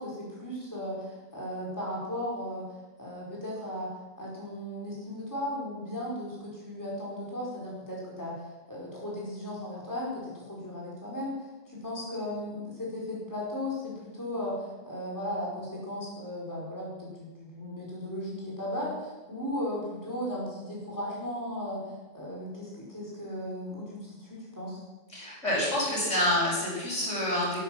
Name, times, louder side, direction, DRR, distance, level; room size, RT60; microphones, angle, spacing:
voice 1, 0.0-2.6 3.0-3.9 4.2-24.8, left 1 dB, 15° left, -5 dB, 5.0 m, -36 dB
voice 2, 25.1-27.6, left 1 dB, 70° left, -5 dB, 7.2 m, -27 dB
14.5 x 11.5 x 7.7 m, 1.1 s
omnidirectional pair, 1.3 m